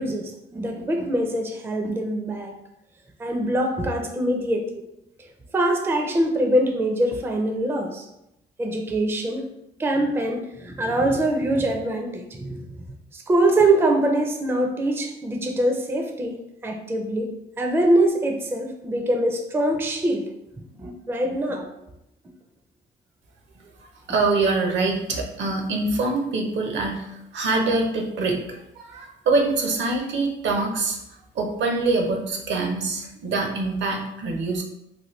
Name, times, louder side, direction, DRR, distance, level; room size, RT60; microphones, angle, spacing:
voice 1, 0.0-2.5 3.2-4.6 5.5-8.1 8.6-9.4 9.8-12.6 13.1-20.2 20.6-21.6, right 1 dB, 10° right, 3 dB, 0.4 m, -23 dB
voice 2, 23.8-31.0 31.3-34.6, right 3 dB, 70° right, 2 dB, 0.7 m, -24 dB
3.1 x 2.1 x 3.1 m, 0.85 s
cardioid pair, 90°, 20 cm